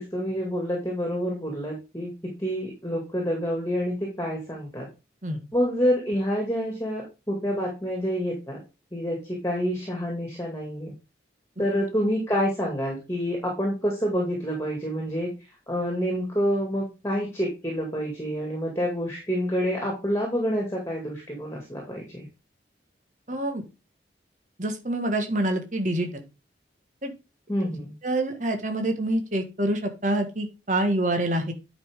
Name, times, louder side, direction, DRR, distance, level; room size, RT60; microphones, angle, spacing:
voice 1, 0.0-4.9 5.5-8.6 8.9-10.9 11.6-15.3 15.7-22.3 27.5-27.9, equal, 15° left, -1 dB, 2.2 m, -28 dB
voice 2, 23.3-23.6 24.6-26.2 27.0-27.1 28.0-31.5, right 1 dB, 40° right, 5 dB, 1.5 m, -26 dB
9.8 x 5.4 x 3.6 m, 0.28 s
head